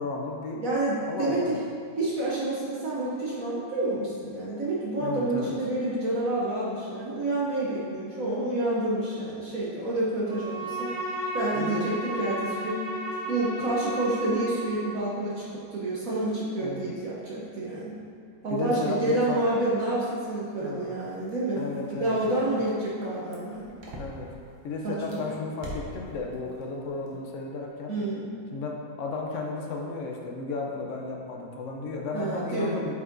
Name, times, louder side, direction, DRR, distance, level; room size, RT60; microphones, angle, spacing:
voice 1, 0.0-0.6 1.1-1.6 5.0-5.5 11.5-11.9 16.6-16.9 18.5-19.4 20.6-21.0 21.5-22.6 24.0-24.3 24.6-27.9 28.5-33.0, left 3 dB, 75° left, 0 dB, 0.7 m, -34 dB
voice 2, 0.6-1.6 2.0-10.9 11.3-12.8 13.3-15.4 15.7-18.0 18.4-21.6 21.9-23.7 24.8-25.3 27.9-28.3 32.1-32.8, right 2 dB, 55° right, -6 dB, 1.1 m, -28 dB
Bowed string instrument, 10.2-15.1, right 1 dB, 25° right, 1.3 m, -34 dB
sound 1, 20.6-24.5 25.0-26.5 26.8-27.2, right 1 dB, 80° right, 1.8 m, -42 dB
8.3 x 4.8 x 2.6 m, 2.2 s
omnidirectional pair, 2.1 m